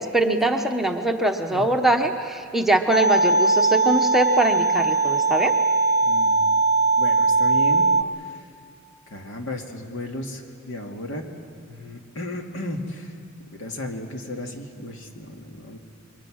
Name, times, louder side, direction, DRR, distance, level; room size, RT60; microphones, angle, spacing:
voice 1, 0.0-5.5, right 2 dB, ahead, 3 dB, 0.9 m, -22 dB
sound 1, 2.9-8.0, right 3 dB, 85° left, 0.9 m, -20 dB
voice 2, 6.0-6.5 7.0-8.5 9.1-11.3 11.7-13.2 13.5-15.8, left 1 dB, 70° left, 2 dB, 2.3 m, -34 dB
28.0 x 23.5 x 6.4 m, 2.3 s
head